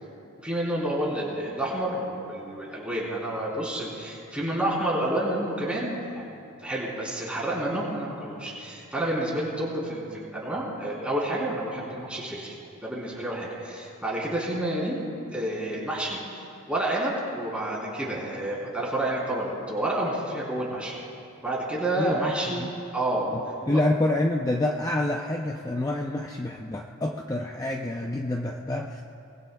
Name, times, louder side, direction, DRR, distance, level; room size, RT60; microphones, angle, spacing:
voice 1, 0.4-12.6 12.8-15.0 15.3-20.9 21.4-23.3 23.7-23.8, right 1 dB, 5° right, -5 dB, 3.4 m, -29 dB
voice 2, 22.0-22.7 23.3-29.0, left 1 dB, 15° left, 1 dB, 0.5 m, -28 dB
23.5 x 20.5 x 2.3 m, 2.8 s
head